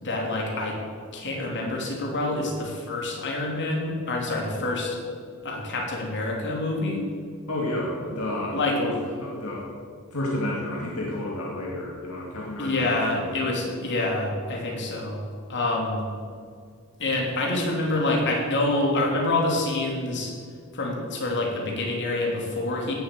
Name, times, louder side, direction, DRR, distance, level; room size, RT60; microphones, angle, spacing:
voice 1, 0.0-0.8 1.1-5.0 5.4-7.1 8.5-8.8 12.6-15.2 15.5-16.0 17.0-20.3 20.7-22.9, left 2 dB, 55° left, -1 dB, 3.2 m, -27 dB
voice 2, 7.5-9.7 10.1-13.5, left 1 dB, 75° left, -3 dB, 2.5 m, -31 dB
17.0 x 7.7 x 7.5 m, 2.1 s
head